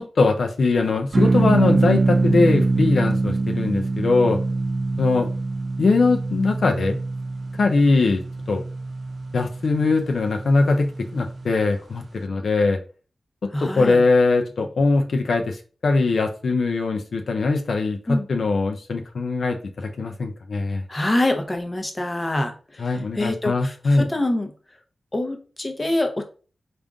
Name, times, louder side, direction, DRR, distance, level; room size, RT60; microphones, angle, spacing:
voice 1, 0.0-4.4 5.0-5.3 5.8-7.0 7.6-8.2 8.5-8.6 9.3-12.8 13.6-20.8 22.8-24.1, left 3 dB, 70° left, 4 dB, 0.5 m, -21 dB
sound 1, 1.1-11.7, right 3 dB, 50° right, 0.4 m, -24 dB
voice 2, 13.5-14.0 18.1-18.3 20.9-24.5 25.1-26.2, left 1 dB, 25° left, 5 dB, 0.7 m, -25 dB
3.6 x 2.5 x 3.4 m, 0.36 s
wide cardioid pair, 75°, 0 cm